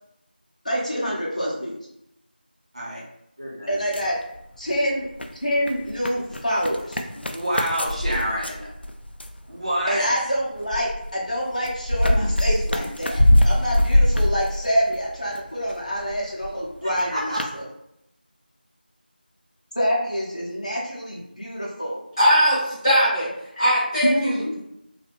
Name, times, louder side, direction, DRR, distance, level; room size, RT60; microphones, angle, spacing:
voice 1, 0.6-1.8 3.7-4.2 4.6-5.1 5.4-7.0 9.9-17.6 19.7-22.0 24.0-24.5, equal, 45° left, -5 dB, 0.9 m, -26 dB
voice 2, 3.4-3.8 7.1-8.7 9.5-10.1 16.8-17.4, equal, 35° right, -6 dB, 0.9 m, -28 dB
sound 1, 3.7-4.8 5.0-9.4 10.1-15.4 15.7-16.6 17.0-17.1 17.4-17.5, left 1 dB, 90° left, 0.4 m, -22 dB
voice 3, 22.2-23.3 23.5-24.4, equal, 20° left, -14 dB, 1.0 m, -19 dB
2.9 x 2.5 x 2.9 m, 0.80 s
figure-of-eight pair, 180°, 5 cm